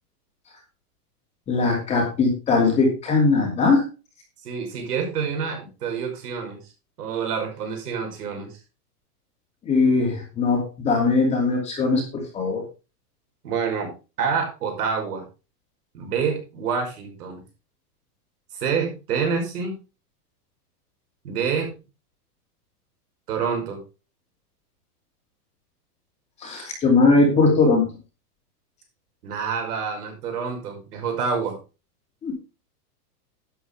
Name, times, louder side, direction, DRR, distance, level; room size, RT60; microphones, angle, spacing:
voice 1, 1.5-3.9 9.6-12.6 26.4-27.8 32.2-32.3, left 3 dB, 15° left, 1 dB, 2.6 m, -20 dB
voice 2, 4.4-6.6 7.0-8.5 13.4-13.9 14.2-15.2 15.9-17.4 18.5-19.8 21.2-21.7 23.3-23.8 29.2-31.6, right 6 dB, 75° right, 3 dB, 5.4 m, -27 dB
11.5 x 9.2 x 3.4 m, 0.31 s
supercardioid pair, 180°, 47 cm